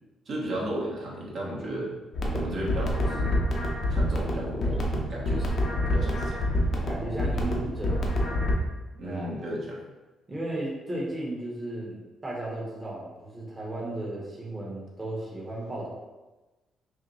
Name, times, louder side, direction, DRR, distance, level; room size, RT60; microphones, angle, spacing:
voice 1, 0.3-1.9 2.3-3.4 3.9-5.5 5.8-6.4 9.0-9.8, right 1 dB, 60° right, -5 dB, 1.2 m, -34 dB
sound 1, 2.1-8.5, left 1 dB, 55° left, 0.8 m, -27 dB
voice 2, 6.9-8.2 9.0-9.3 10.3-15.9, right 1 dB, 25° right, -4 dB, 1.0 m, -35 dB
5.6 x 2.1 x 3.1 m, 1.1 s
cardioid pair, 90°, 0 cm